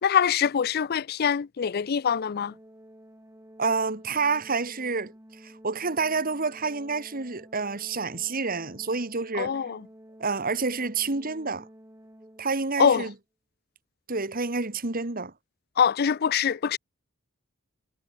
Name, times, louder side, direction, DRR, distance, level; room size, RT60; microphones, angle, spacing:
voice 1, 0.0-2.5 9.3-9.8 12.8-13.1 15.8-16.8, left 7 dB, 50° left, 0.4 m, -24 dB
Organ, 2.1-12.9, equal, 15° right, 4.5 m, -51 dB
voice 2, 3.6-5.1 5.4-9.6 10.2-11.7 12.4-13.1 14.1-15.3, right 4 dB, 45° right, 2.0 m, -28 dB
head